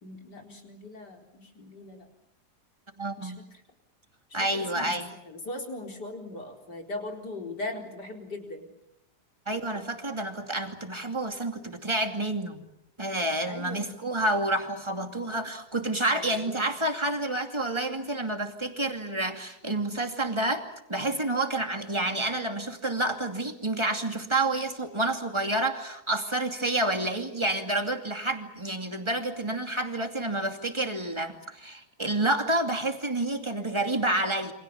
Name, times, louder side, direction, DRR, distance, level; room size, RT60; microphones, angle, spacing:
voice 1, 0.0-2.1 3.2-3.4 4.3-5.0 5.2-8.7 13.4-13.9 16.0-16.7, left 2 dB, 80° left, 2 dB, 4.9 m, -39 dB
voice 2, 3.0-3.4 4.3-5.1 9.5-12.6 13.0-34.5, right 2 dB, 15° right, 5 dB, 2.5 m, -29 dB
29.0 x 25.5 x 7.2 m, 0.82 s
omnidirectional pair, 1.8 m